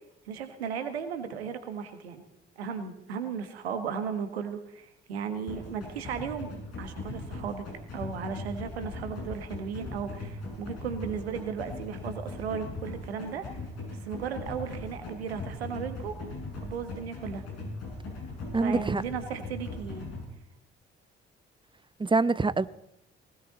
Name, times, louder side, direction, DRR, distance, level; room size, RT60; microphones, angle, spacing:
voice 1, 0.2-2.2 2.6-6.5 6.8-7.6 7.9-13.6 13.9-16.1 16.6-17.4 18.6-20.1, right 7 dB, 80° right, 1.5 m, -35 dB
sound 1, 5.5-20.2, left 2 dB, 50° left, 6.3 m, -39 dB
voice 2, 18.5-19.0 22.0-22.7, right 3 dB, 15° right, 0.8 m, -25 dB
19.5 x 17.0 x 4.0 m
figure-of-eight pair, 40°, 31 cm